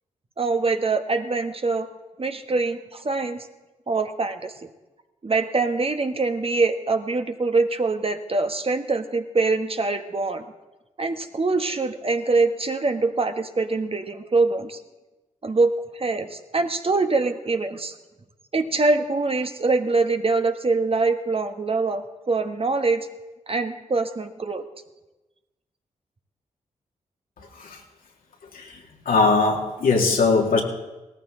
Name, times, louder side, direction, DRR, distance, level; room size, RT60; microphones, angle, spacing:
voice 1, 0.4-1.9 2.2-3.5 3.9-4.5 5.2-10.4 11.0-14.8 15.4-17.9 18.5-23.1 23.5-24.6, right 3 dB, 40° right, 7 dB, 1.3 m, -24 dB
voice 2, 29.1-30.6, left 4 dB, 75° left, 1 dB, 2.2 m, -20 dB
17.5 x 13.5 x 3.8 m, 1.1 s
supercardioid pair, 40°, 15 cm